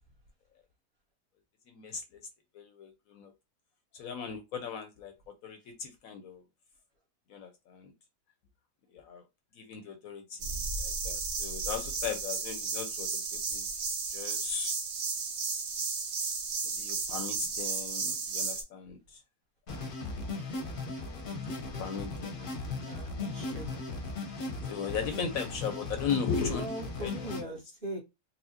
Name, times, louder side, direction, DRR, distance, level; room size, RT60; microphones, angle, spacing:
voice 1, 1.7-2.2 2.5-3.3 3.9-5.1 5.4-6.4 7.3-7.9 8.9-9.2 9.5-13.7 14.1-14.7 16.6-19.2 21.5-22.6 24.4-27.5, left 6 dB, 70° left, 0.9 m, -37 dB
sound 1, 10.4-18.6, right 4 dB, 60° right, 1.1 m, -34 dB
sound 2, 19.7-27.4, left 3 dB, 45° left, 0.7 m, -37 dB
voice 2, 22.8-23.7 26.5-28.0, equal, 35° right, 1.2 m, -40 dB
4.2 x 2.1 x 2.7 m
omnidirectional pair, 1.7 m